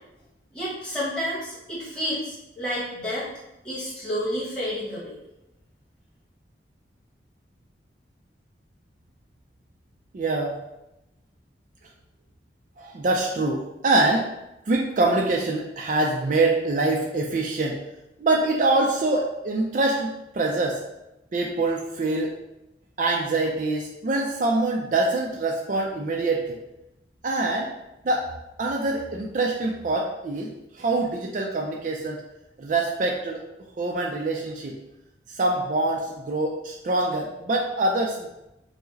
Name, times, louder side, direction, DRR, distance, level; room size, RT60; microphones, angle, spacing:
voice 1, 0.5-3.3 3.6-5.1, equal, 5° left, -10 dB, 1.2 m, -30 dB
voice 2, 10.1-10.6 12.8-14.3 14.7-17.8 18.2-20.8 21.3-22.3 23.0-26.6 27.2-27.7 28.0-28.2 28.6-30.5 30.8-32.2 32.6-33.4 33.8-34.8 35.3-38.3, right 2 dB, 45° right, -1 dB, 0.4 m, -24 dB
4.7 x 2.1 x 3.9 m, 0.91 s
head